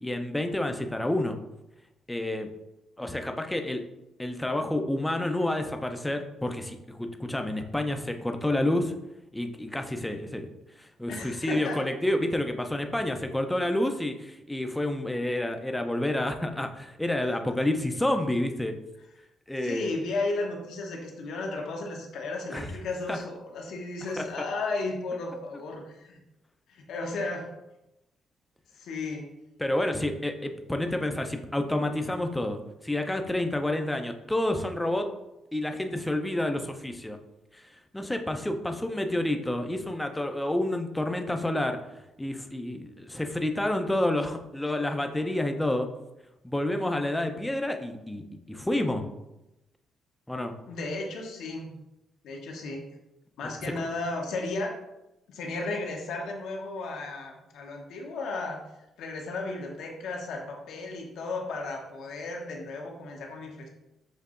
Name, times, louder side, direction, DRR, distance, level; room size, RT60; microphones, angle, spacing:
voice 1, 0.0-1.4 2.1-2.5 3.0-3.8 4.2-8.9 9.3-10.5 10.8-18.8 19.5-19.9 22.5-22.7 23.1-23.2 24.2-24.3 29.6-35.1 35.5-37.2 37.5-37.6 37.9-41.8 42.2-45.9 46.4-49.1 50.3-50.5 53.6-53.7, left 1 dB, 10° left, 5 dB, 0.5 m, -29 dB
voice 2, 11.1-11.8 17.3-17.4 19.6-26.2 26.7-27.5 28.8-29.2 50.7-51.8 52.2-52.8 53.4-54.7 55.3-58.6 59.0-63.7, left 3 dB, 80° left, 1 dB, 0.8 m, -34 dB
6.6 x 2.7 x 2.5 m, 0.94 s
cardioid pair, 90°, 0 cm